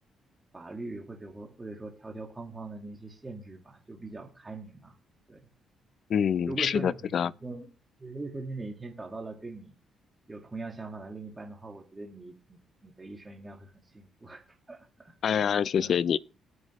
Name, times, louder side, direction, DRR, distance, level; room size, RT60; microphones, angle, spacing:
voice 1, 0.5-5.0 5.3-5.5 6.5-7.7 8.0-9.7 10.3-16.0, right 3 dB, 20° right, 1.8 m, -42 dB
voice 2, 6.1-7.3 15.2-16.2, left 8 dB, 60° left, 0.4 m, -26 dB
19.0 x 6.3 x 3.1 m
cardioid pair, 90°, 0 cm